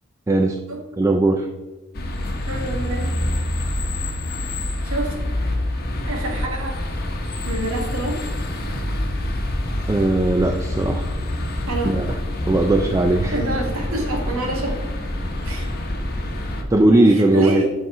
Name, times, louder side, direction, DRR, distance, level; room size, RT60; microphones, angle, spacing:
voice 1, 0.3-0.6 1.0-1.5 9.9-11.1 11.8-12.1 12.5-13.4 16.7-17.6, right 2 dB, 15° right, 5 dB, 0.3 m, -18 dB
sound 1, 1.9-16.6, left 1 dB, 50° left, 1.0 m, -26 dB
voice 2, 2.5-3.1 4.8-5.1 6.1-6.8 7.4-8.2 11.7-12.0 13.3-14.7 15.4-15.7 17.0-17.7, right 2 dB, 90° right, 1 dB, 1.6 m, -27 dB
7.5 x 4.1 x 4.7 m, 1.2 s
head